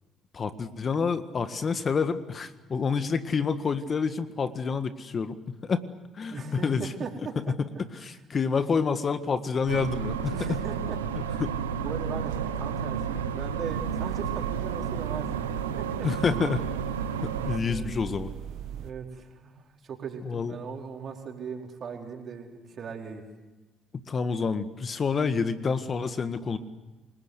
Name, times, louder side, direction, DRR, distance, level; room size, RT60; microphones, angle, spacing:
voice 1, 0.3-5.4 5.6-5.8 6.1-6.9 7.3-7.7 8.0-10.6 11.1-11.5 16.0-16.6 17.2-18.3 20.2-20.5 24.1-26.6, left 5 dB, 45° left, 11 dB, 1.7 m, -28 dB
voice 2, 6.3-7.1 7.5-7.6 10.3-11.0 11.8-16.1 17.7-17.9 18.8-23.2, right 5 dB, 50° right, 2 dB, 4.6 m, -39 dB
sound 1, 9.7-17.6, right 7 dB, 90° right, 1.2 m, -31 dB
sound 2, 13.6-18.9, right 10 dB, 65° right, 1.3 m, -40 dB
28.5 x 20.5 x 8.2 m, 1.1 s
hypercardioid pair, 50°, 0 cm